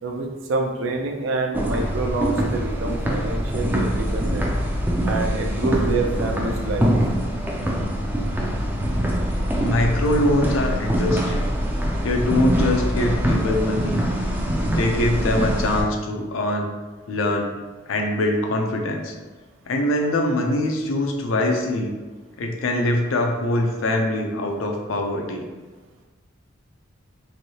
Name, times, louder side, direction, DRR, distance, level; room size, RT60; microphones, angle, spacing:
voice 1, 0.0-4.5 5.0-6.9, right 3 dB, 75° right, 2 dB, 0.5 m, -27 dB
sound 1, 1.5-15.8, equal, 10° right, 0.3 m, -23 dB
voice 2, 9.6-11.5 12.0-14.0 14.6-16.7 17.1-17.5 17.9-19.1 19.7-22.0 22.4-25.4, left 1 dB, 85° left, 2 dB, 0.5 m, -23 dB
3.2 x 2.6 x 2.7 m, 1.3 s
head